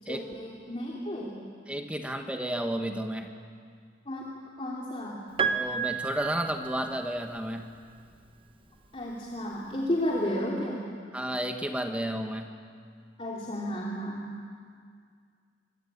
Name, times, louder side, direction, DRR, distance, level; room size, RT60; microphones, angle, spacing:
voice 1, 0.0-1.4 4.1-4.3 4.6-5.3 8.9-10.9 13.2-14.3, left 1 dB, 30° left, -4 dB, 2.8 m, -32 dB
voice 2, 1.7-3.3 5.5-7.7 11.1-12.5, right 1 dB, 5° right, 4 dB, 1.5 m, -32 dB
Piano, 5.4-7.4 8.7-8.8, right 6 dB, 30° right, 1.1 m, -31 dB
25.5 x 24.0 x 8.8 m, 2.1 s
head